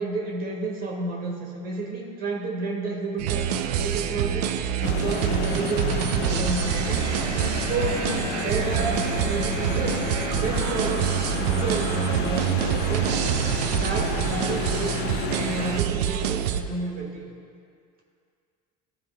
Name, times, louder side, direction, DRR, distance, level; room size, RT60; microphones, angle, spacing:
voice 1, 0.0-4.5 4.8-7.0 7.7-8.1 8.3-10.0 10.3-12.5 12.7-13.1 13.7-15.0 15.3-17.2, right 3 dB, 45° right, -2 dB, 1.7 m, -31 dB
sound 1, 3.2-16.6, right 9 dB, 85° right, 0.5 m, -26 dB
sound 2, 4.8-15.8, left 4 dB, 55° left, 0.9 m, -31 dB
13.0 x 4.6 x 3.5 m, 2.3 s
hypercardioid pair, 85°, 21 cm